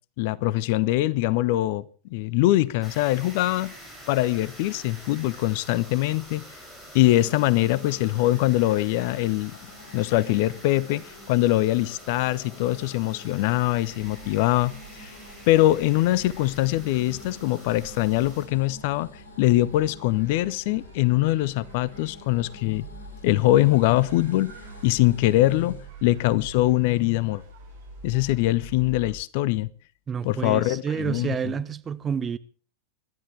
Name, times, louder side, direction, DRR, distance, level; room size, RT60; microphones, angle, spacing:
voice 1, 0.2-1.8 2.1-3.7 4.1-6.4 6.9-9.5 9.9-15.1 15.5-19.1 19.4-22.9 23.2-24.5 24.8-27.4 28.0-29.7 30.2-31.5, left 16 dB, 50° left, 0.7 m, -23 dB
sound 1, 2.8-18.5, equal, 10° left, 7.2 m, -47 dB
sound 2, 7.0-25.9, left 2 dB, 70° left, 6.5 m, -48 dB
sound 3, 13.8-29.1, right 3 dB, 70° right, 7.9 m, -46 dB
voice 2, 30.1-32.4, right 7 dB, 20° right, 1.0 m, -29 dB
25.0 x 13.0 x 3.4 m
figure-of-eight pair, 90°, 0 cm